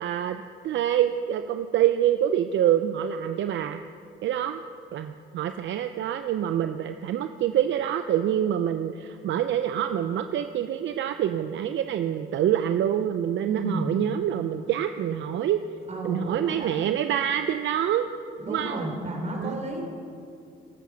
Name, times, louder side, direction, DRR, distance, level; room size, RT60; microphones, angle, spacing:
voice 1, 0.0-3.8 4.2-4.6 4.9-15.6 16.0-18.1 18.5-18.8 19.4-19.6, right 10 dB, 70° right, 8 dB, 0.6 m, -26 dB
voice 2, 13.5-13.9 15.9-16.7 18.4-19.8, right 1 dB, 35° right, 1 dB, 3.9 m, -32 dB
20.5 x 8.3 x 6.3 m, 2.4 s
cardioid pair, 90°, 20 cm